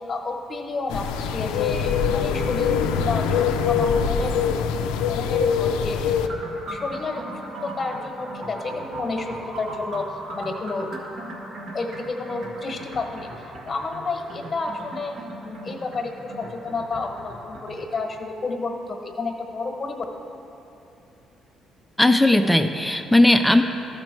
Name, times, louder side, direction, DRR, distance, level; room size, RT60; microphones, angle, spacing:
voice 1, 0.1-4.4 5.1-6.1 6.7-10.1 10.3-10.9 11.7-13.3 13.7-20.0, left 3 dB, 40° left, 4 dB, 1.2 m, -30 dB
sound 1, 0.9-6.3, left 6 dB, 90° left, 0.4 m, -23 dB
sound 2, 6.2-17.9, right 1 dB, 65° right, 1.5 m, -38 dB
voice 2, 22.0-23.6, left 1 dB, 5° left, 7 dB, 0.5 m, -17 dB
13.0 x 5.3 x 4.5 m, 2.9 s
supercardioid pair, 70°, 0 cm